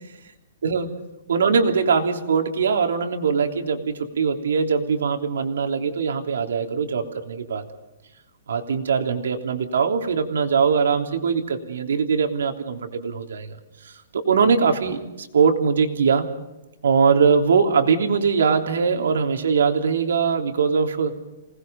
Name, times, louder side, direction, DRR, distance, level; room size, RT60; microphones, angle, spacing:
voice 1, 1.3-7.6 8.5-13.5 13.8-16.3 16.8-21.1, right 5 dB, 80° right, 4 dB, 3.3 m, -21 dB
27.5 x 19.5 x 5.4 m, 0.99 s
hypercardioid pair, 175°, 0 cm